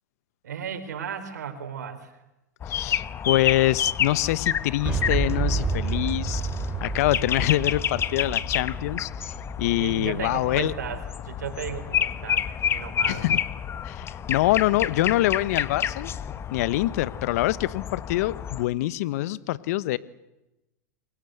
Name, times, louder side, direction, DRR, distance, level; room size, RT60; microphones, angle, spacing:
voice 1, 0.4-2.1 9.7-13.3 15.1-15.2, right 8 dB, 85° right, 10 dB, 4.4 m, -35 dB
sound 1, 2.6-18.6, left 8 dB, 30° left, 1.3 m, -30 dB
voice 2, 2.7-6.4 6.8-10.7 13.1-13.4 13.8-16.1 16.5-20.0, left 16 dB, 65° left, 18 dB, 1.1 m, -25 dB
Boom, 4.9-10.7, right 5 dB, 15° right, 3.6 m, -30 dB
28.5 x 23.5 x 8.0 m, 0.96 s
hypercardioid pair, 110°, 9 cm